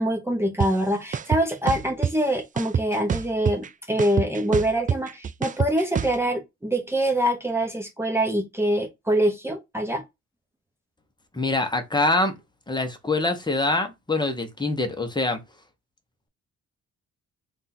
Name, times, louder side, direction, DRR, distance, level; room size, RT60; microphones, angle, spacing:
voice 1, 0.0-10.0, right 1 dB, 10° right, 1.1 m, -25 dB
sound 1, 0.6-0.7 1.1-2.1 2.6-3.7 4.0-6.2, right 7 dB, 25° right, 0.4 m, -25 dB
voice 2, 11.3-12.3 12.7-15.4, left 2 dB, 15° left, 1.1 m, -24 dB
3.6 x 2.6 x 4.2 m
cardioid pair, 90°, 30 cm